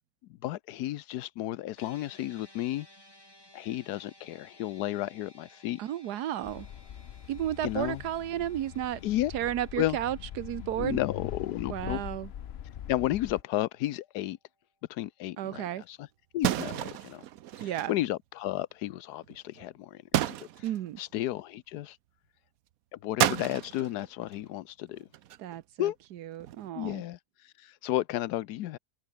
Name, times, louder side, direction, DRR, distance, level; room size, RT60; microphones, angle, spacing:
voice 1, 0.4-2.9 3.5-5.8 7.6-8.0 9.0-9.3 9.8-10.0 10.8-12.0 12.9-14.4 14.9-16.1 16.3-17.2 17.6-20.7 21.0-22.0 23.0-25.1 25.8-26.0 26.8-28.8, left 14 dB, 85° left, 1.2 m, -33 dB
sound 1, 1.8-14.2, left 1 dB, 15° left, 6.8 m, -59 dB
voice 2, 5.8-6.7 7.3-9.0 9.3-11.0 11.7-12.3 15.4-15.8 17.6-17.9 20.6-21.0 25.4-27.0, right 12 dB, 85° right, 1.4 m, -33 dB
sound 2, 6.4-13.4, left 10 dB, 55° left, 0.7 m, -42 dB
sound 3, 16.4-17.9 19.2-19.6 20.1-21.0 23.2-24.5 24.9-25.6 26.4-26.7, right 13 dB, 70° right, 1.1 m, -31 dB
omnidirectional pair, 1.7 m